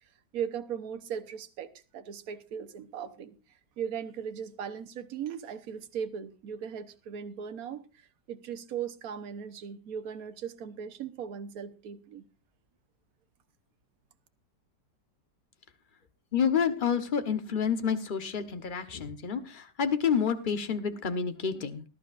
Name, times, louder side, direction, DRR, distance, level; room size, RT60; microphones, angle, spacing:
voice 1, 0.3-3.4 3.8-12.3, right 8 dB, 60° right, 1.3 m, -38 dB
voice 2, 16.3-21.8, left 7 dB, 35° left, 1.0 m, -29 dB
19.5 x 11.5 x 2.5 m
omnidirectional pair, 1.9 m